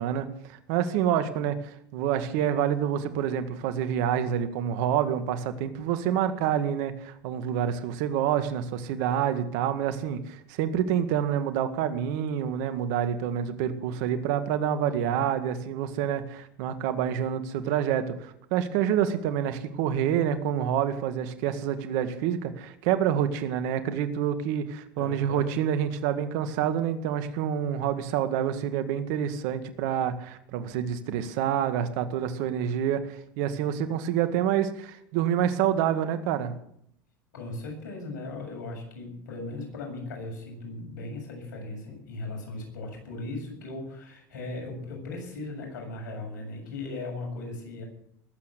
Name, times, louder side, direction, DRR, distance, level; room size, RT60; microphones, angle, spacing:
voice 1, 0.0-36.5, right 9 dB, 70° right, 10 dB, 2.0 m, -27 dB
voice 2, 25.0-25.5 37.3-47.8, left 2 dB, 80° left, 2 dB, 7.6 m, -38 dB
20.0 x 8.6 x 8.3 m, 0.70 s
hypercardioid pair, 95°, 10 cm